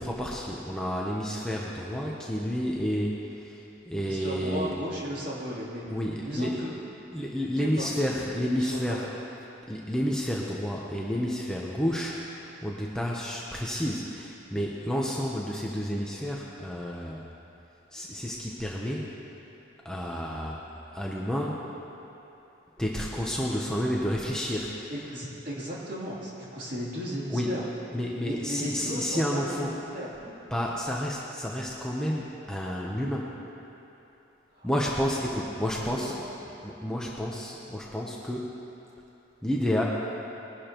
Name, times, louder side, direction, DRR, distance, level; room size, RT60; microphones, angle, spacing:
voice 1, 0.0-4.7 5.9-6.6 7.1-9.1 9.7-17.3 17.9-19.2 19.8-20.6 20.9-21.7 22.8-24.9 27.3-27.5 27.9-29.7 30.5-33.4 34.6-36.1 36.6-38.5 39.4-39.8, equal, 5° left, -4 dB, 0.8 m, -30 dB
voice 2, 4.0-5.8 6.2-6.7 7.6-8.2 8.5-9.1 22.9-23.2 24.9-27.6 28.2-30.1 34.5-34.9 35.7-36.2, equal, 45° right, -7 dB, 3.2 m, -36 dB
21.0 x 11.5 x 3.0 m, 3.0 s
head